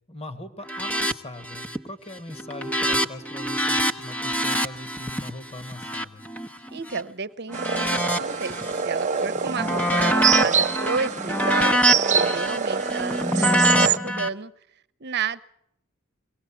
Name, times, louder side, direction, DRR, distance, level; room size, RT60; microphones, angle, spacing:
voice 1, 0.1-6.2 9.6-9.7, left 1 dB, 30° left, 10 dB, 1.7 m, -40 dB
sound 1, 0.7-1.1 1.4-1.9 2.2-7.0 7.5-8.8 9.2-14.3, equal, 10° left, 1.1 m, -25 dB
voice 2, 6.7-14.5 15.0-15.4, right 5 dB, 55° right, 14 dB, 1.1 m, -31 dB
sound 2, 7.5-14.0, right 6 dB, 35° right, 0.7 m, -25 dB
23.5 x 18.0 x 7.2 m, 0.74 s
head